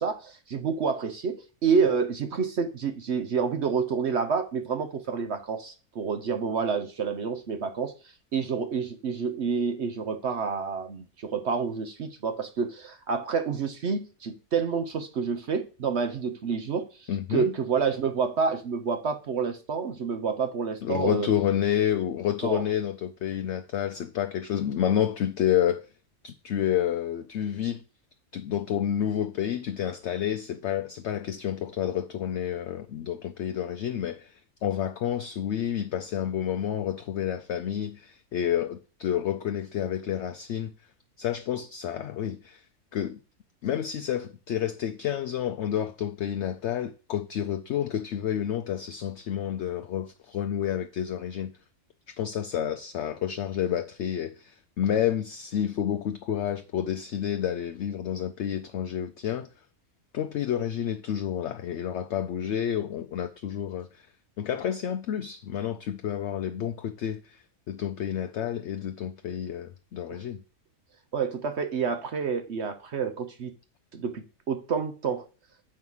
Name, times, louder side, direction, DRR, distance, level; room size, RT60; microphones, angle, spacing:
voice 1, 0.0-7.9 8.3-21.3 22.4-22.6 70.1-70.2 71.1-73.5 73.9-75.3, right 5 dB, 55° right, 0.9 m, -28 dB
voice 2, 17.1-17.5 20.8-25.9 26.2-27.8 28.3-40.7 41.2-42.6 42.9-43.2 43.6-51.5 52.2-59.5 60.1-64.1 64.4-70.4, left 10 dB, 65° left, 0.7 m, -29 dB
7.5 x 4.7 x 5.5 m
omnidirectional pair, 1.5 m